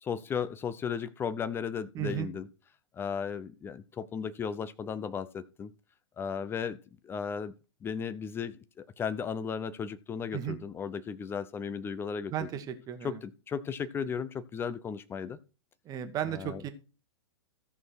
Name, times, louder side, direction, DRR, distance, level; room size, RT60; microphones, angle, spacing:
voice 1, 0.0-2.5 2.9-5.7 6.2-6.8 7.0-7.5 7.8-12.5 13.0-15.4 16.3-16.6, left 6 dB, 15° left, 0.6 m, -35 dB
voice 2, 1.9-2.3 10.3-10.6 12.3-13.2 15.9-16.7, right 10 dB, 25° right, 1.3 m, -34 dB
14.0 x 6.2 x 4.6 m
figure-of-eight pair, 105°, 15 cm